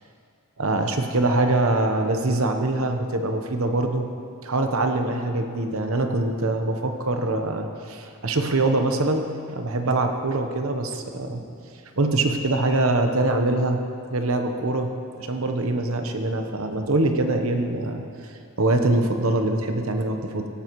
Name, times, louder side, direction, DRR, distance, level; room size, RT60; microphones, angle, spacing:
voice 1, 0.6-4.1 4.4-11.4 12.0-13.8 14.1-18.0 18.6-20.5, right 2 dB, 70° right, 5 dB, 1.0 m, -24 dB
17.5 x 12.5 x 3.1 m, 2.3 s
head